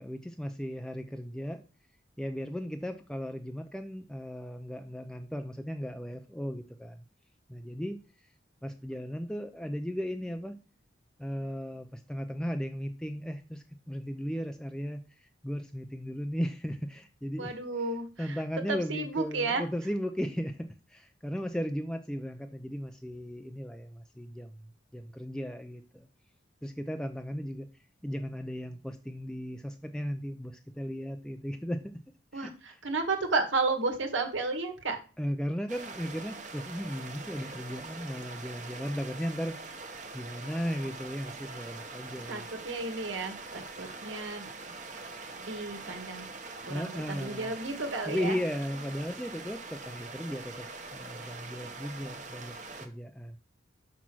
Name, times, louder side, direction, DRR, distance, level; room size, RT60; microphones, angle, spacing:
voice 1, 0.0-1.6 2.2-7.0 7.5-8.0 8.6-10.5 11.2-17.6 18.2-26.1 26.6-27.7 28.0-31.8 32.3-32.5 35.2-42.5 46.7-47.5 48.1-53.4, equal, 5° left, 6 dB, 0.4 m, -36 dB
voice 2, 17.4-18.4 18.7-19.6 32.3-35.0 42.3-44.5 45.3-46.3 46.6-48.4, right 3 dB, 90° right, 5 dB, 1.8 m, -32 dB
sound 1, 35.7-52.9, right 3 dB, 40° right, 1.1 m, -43 dB
6.1 x 5.8 x 6.1 m, 0.37 s
head